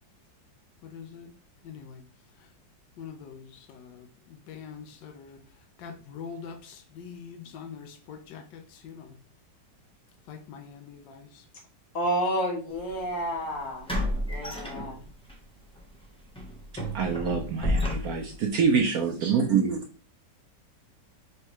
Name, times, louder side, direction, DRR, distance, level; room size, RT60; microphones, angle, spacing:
voice 1, 0.8-1.3 1.6-2.0 2.4-2.5 3.0-5.4 5.8-9.2 10.3-11.5, left 6 dB, 90° left, 5 dB, 1.3 m, -44 dB
voice 2, 11.9-13.9 14.2-15.0, equal, 50° left, -1 dB, 1.7 m, -30 dB
sound 1, 12.8-12.9 13.9-15.3 15.7-15.9 16.4-18.5, left 1 dB, 5° left, 0.4 m, -31 dB
voice 3, 16.9-19.8, right 6 dB, 65° right, 2 dB, 1.0 m, -25 dB
4.6 x 3.2 x 3.0 m, 0.37 s
omnidirectional pair, 1.9 m